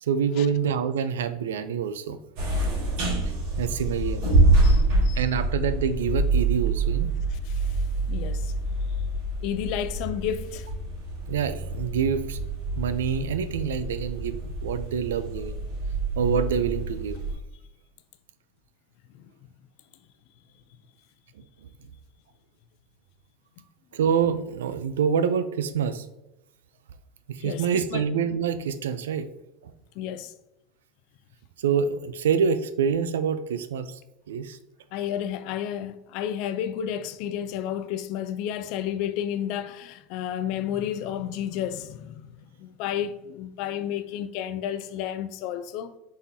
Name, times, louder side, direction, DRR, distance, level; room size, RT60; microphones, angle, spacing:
voice 1, 0.0-2.2 3.6-4.3 5.1-7.2 11.3-12.4 12.8-15.7 16.2-17.2 21.4-21.5 23.9-26.1 27.3-29.3 29.6-29.7 31.6-34.0 34.3-34.6, right 7 dB, 90° right, 0.3 m, -26 dB
sound 1, 2.4-17.3, right 2 dB, 65° right, 1.4 m, -26 dB
voice 2, 4.6-5.2 7.3-7.8 8.1-8.5 9.4-10.7 19.1-19.2 27.4-28.0 30.0-30.3 34.9-45.9, left 10 dB, 60° left, 0.3 m, -32 dB
4.1 x 3.6 x 2.6 m
hypercardioid pair, 100°, 0 cm